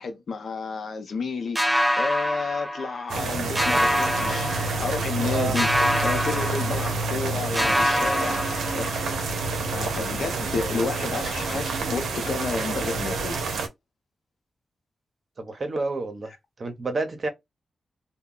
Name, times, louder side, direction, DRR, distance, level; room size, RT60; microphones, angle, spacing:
voice 1, 0.0-4.5 4.8-5.7 6.0-8.4 8.7-8.9 9.7-13.4, left 4 dB, 75° left, 0.7 m, -31 dB
sound 1, 1.6-3.3 3.6-5.2 5.6-7.3 7.6-9.2, equal, 5° right, 0.3 m, -26 dB
sound 2, 3.1-13.7, right 3 dB, 90° right, 0.6 m, -28 dB
voice 2, 15.4-16.3 16.6-17.3, right 3 dB, 55° right, 0.9 m, -29 dB
2.2 x 2.2 x 3.7 m
cardioid pair, 50°, 0 cm